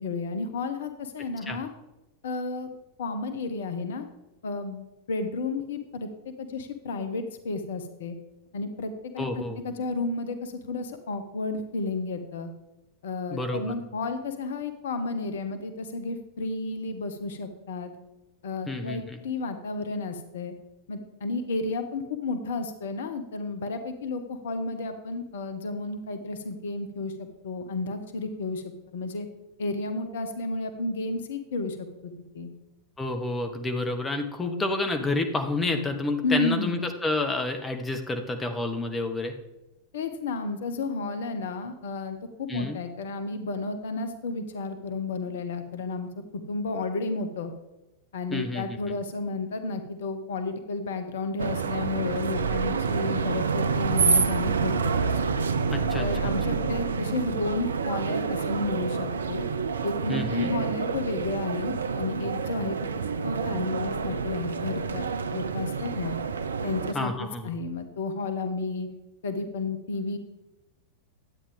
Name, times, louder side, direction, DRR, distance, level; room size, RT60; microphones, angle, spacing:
voice 1, 0.0-1.7 2.2-2.7 3.0-4.1 4.4-8.1 8.5-12.5 13.0-17.9 18.4-20.5 20.9-28.6 28.9-29.3 29.6-32.5 36.2-36.8 39.9-47.5 48.1-55.4 56.0-59.4 59.8-62.8 63.2-66.2 66.6-68.9 69.2-70.2, left 3 dB, 60° left, 8 dB, 0.9 m, -32 dB
voice 2, 9.2-9.6 13.3-13.7 18.7-19.2 33.0-39.3 42.5-42.8 48.3-48.8 55.7-56.0 60.1-60.5 66.9-67.5, left 2 dB, 15° left, 5 dB, 0.9 m, -29 dB
sound 1, 51.4-66.9, right 5 dB, 70° right, 0.5 m, -28 dB
11.0 x 8.7 x 3.5 m, 0.97 s
figure-of-eight pair, 90°, 0 cm